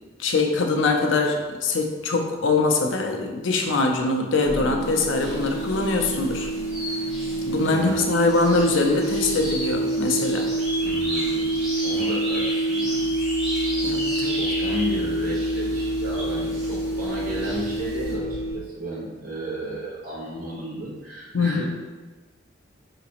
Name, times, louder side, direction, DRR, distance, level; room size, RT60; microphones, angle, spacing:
voice 1, 0.2-6.5 7.5-10.5 13.8-14.4 21.3-21.7, left 3 dB, 90° left, 3 dB, 0.6 m, -23 dB
sound 1, 4.4-18.6, right 2 dB, 90° right, 0.9 m, -27 dB
sound 2, 4.8-18.1, equal, ahead, 1.4 m, -35 dB
voice 2, 7.5-8.4 10.8-13.1 14.3-21.7, equal, 50° right, -6 dB, 1.3 m, -33 dB
4.8 x 2.9 x 2.9 m, 1.2 s
head